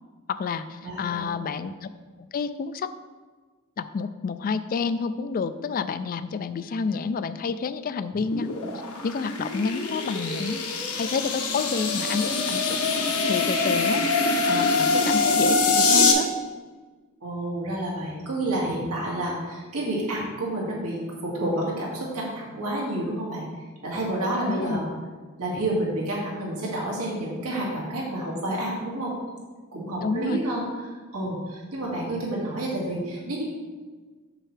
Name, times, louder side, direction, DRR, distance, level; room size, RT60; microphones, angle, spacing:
voice 1, 0.3-1.9 2.3-2.9 3.8-8.6 9.0-12.8 13.3-14.0 14.5-16.3 24.5-24.8 30.0-30.4, left 5 dB, 40° left, 12 dB, 0.3 m, -29 dB
voice 2, 0.8-1.3 17.2-23.4 23.8-24.9 25.4-29.1 29.7-30.6 31.1-33.4, right 1 dB, 90° right, -4 dB, 2.1 m, -29 dB
sound 1, 8.1-16.1, left 3 dB, 80° left, 1.2 m, -24 dB
7.5 x 7.5 x 3.3 m, 1.4 s
head